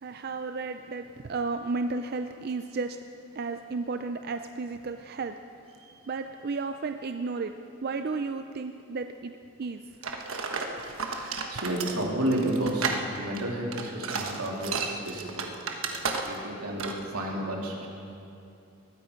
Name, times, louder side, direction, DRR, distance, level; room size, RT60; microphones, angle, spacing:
voice 1, 0.0-3.0 3.4-5.4 6.1-7.5 7.8-9.8 11.5-11.6, right 4 dB, 45° right, 8 dB, 0.4 m, -33 dB
voice 2, 5.8-6.1 11.0-15.5 15.8-16.0 16.3-17.9, right 1 dB, 85° right, -2 dB, 3.0 m, -32 dB
sound 1, 10.0-16.5 16.8-17.0, right 4 dB, 70° right, 1.3 m, -33 dB
19.5 x 14.0 x 5.2 m, 2.7 s
head